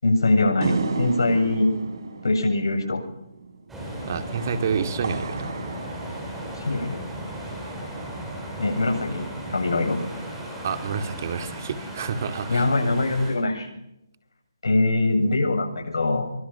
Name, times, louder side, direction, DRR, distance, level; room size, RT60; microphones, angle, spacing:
voice 1, 0.0-1.7 2.2-3.0 6.6-7.0 8.6-10.0 12.5-13.7 14.6-16.3, left 2 dB, 80° left, 4 dB, 7.9 m, -22 dB
sound 1, 0.6-7.1, right 4 dB, 65° right, 5.4 m, -33 dB
sound 2, 3.7-13.3, right 1 dB, 5° right, 7.6 m, -36 dB
voice 2, 4.1-5.6 10.6-12.7, right 6 dB, 40° right, 8 dB, 2.4 m, -28 dB
27.0 x 24.0 x 5.9 m, 0.82 s
hypercardioid pair, 160°, 2 cm